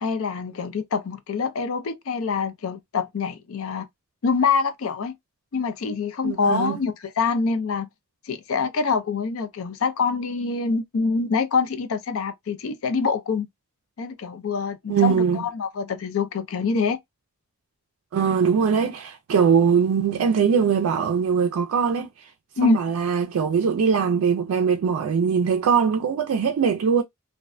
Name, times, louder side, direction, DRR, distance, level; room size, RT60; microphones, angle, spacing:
voice 1, 0.0-3.9 4.2-5.1 5.5-7.9 8.2-13.5 14.0-17.0 22.6-22.8, left 5 dB, 75° left, 0.5 m, -25 dB
voice 2, 6.2-6.8 14.9-15.4 18.1-22.3 22.6-27.0, right 6 dB, 85° right, 0.3 m, -21 dB
2.6 x 2.1 x 2.3 m
head